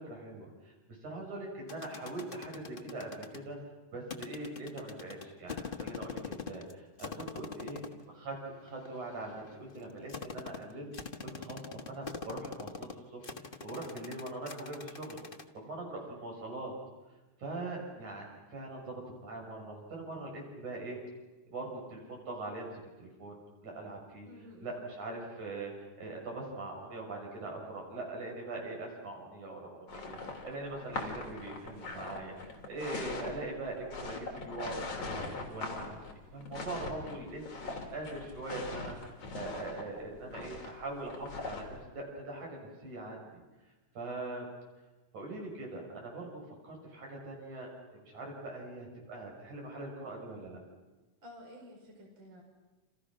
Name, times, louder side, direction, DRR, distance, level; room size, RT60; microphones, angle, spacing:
voice 1, 0.0-3.6 3.9-7.8 8.2-8.4 8.6-10.9 11.2-16.7 17.4-21.0 21.5-22.7 23.0-24.3 24.6-36.0 36.3-43.4 43.9-44.5 45.1-50.6, right 2 dB, 65° right, 0 dB, 7.6 m, -42 dB
sound 1, 1.7-3.4 4.1-6.7 7.0-8.0 8.7-15.4, left 5 dB, 65° left, 0.5 m, -43 dB
voice 2, 7.1-7.8 24.3-24.9 51.2-52.4, left 1 dB, 35° right, 0 dB, 5.6 m, -52 dB
sound 2, 29.9-41.8, left 3 dB, 50° left, 4.2 m, -41 dB
29.0 x 29.0 x 6.2 m, 1.2 s
omnidirectional pair, 3.7 m